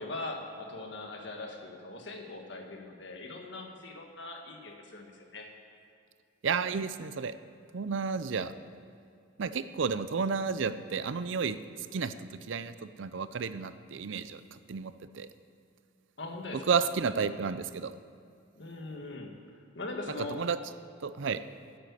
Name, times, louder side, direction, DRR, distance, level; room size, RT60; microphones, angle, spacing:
voice 1, 0.0-5.5 16.2-16.8 18.6-19.3 19.8-20.4, left 2 dB, 65° left, 2 dB, 1.6 m, -41 dB
voice 2, 6.4-7.3 7.7-8.5 9.4-11.6 11.9-14.4 14.7-15.3 16.7-17.9 20.3-20.6 21.0-21.4, right 5 dB, 75° right, 13 dB, 0.5 m, -31 dB
9.4 x 8.9 x 8.3 m, 2.3 s
head